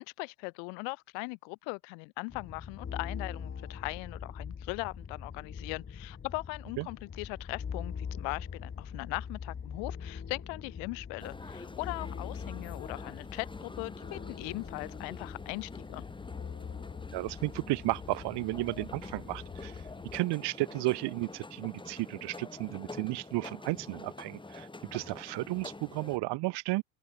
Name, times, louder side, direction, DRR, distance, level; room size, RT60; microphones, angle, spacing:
voice 1, 0.0-16.0, left 39 dB, 60° left, 3.4 m, -39 dB
sound 1, 2.3-20.2, left 6 dB, 25° left, 6.3 m, -43 dB
sound 2, 11.2-26.2, left 2 dB, 10° left, 5.6 m, -47 dB
voice 2, 17.1-19.7 20.1-26.8, right 21 dB, 55° right, 2.6 m, -33 dB
open air
hypercardioid pair, 100°, 50 cm